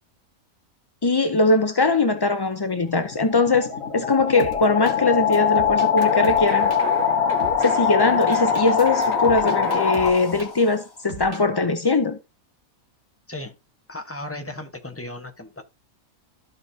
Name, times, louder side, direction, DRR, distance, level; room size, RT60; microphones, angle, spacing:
voice 1, 1.0-6.7 7.6-12.2, left 3 dB, 40° left, 0.3 m, -21 dB
sound 1, 2.9-10.7, left 7 dB, 70° left, 1.4 m, -22 dB
sound 2, 4.4-5.0 5.3-6.8 7.4-7.7 8.2-10.8 11.1-11.4, right 2 dB, 55° right, 2.1 m, -38 dB
sound 3, 6.0-10.0 10.3-10.4, right 4 dB, 40° right, 1.0 m, -35 dB
voice 2, 13.9-15.6, left 1 dB, 10° left, 1.0 m, -35 dB
14.5 x 5.2 x 2.8 m
omnidirectional pair, 1.5 m